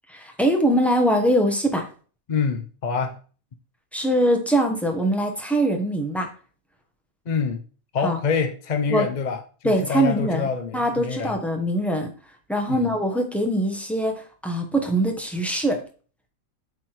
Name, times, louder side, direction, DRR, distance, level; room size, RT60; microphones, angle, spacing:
voice 1, 0.1-1.8 3.9-6.3 8.0-8.2 8.9-9.0 9.6-10.5 10.7-12.1 12.5-14.1 14.4-15.8, right 1 dB, ahead, 1.0 m, -22 dB
voice 2, 2.3-3.2 7.3-7.6 7.9-9.4 9.6-11.4 12.7-12.9, left 6 dB, 45° left, 0.6 m, -26 dB
8.2 x 3.6 x 4.5 m
omnidirectional pair, 1.5 m